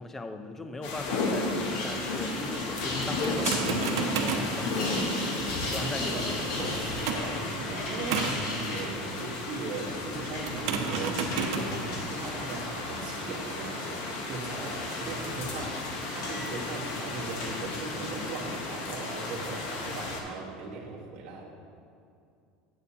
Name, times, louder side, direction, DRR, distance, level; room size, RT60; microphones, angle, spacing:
voice 1, 0.0-6.4, left 2 dB, 10° left, 8 dB, 0.4 m, -40 dB
sound 1, 0.8-20.2, left 2 dB, 60° left, 1.1 m, -34 dB
sound 2, 1.6-13.2 13.6-14.2 15.1-18.3, left 2 dB, 85° left, 1.7 m, -40 dB
sound 3, 3.2-7.4 8.1-8.5 10.5-20.1, right 6 dB, 90° right, 0.7 m, -37 dB
voice 2, 5.8-21.5, right 3 dB, 45° right, -4 dB, 1.4 m, -38 dB
9.1 x 8.0 x 2.8 m, 2.4 s
cardioid pair, 160°, 3 cm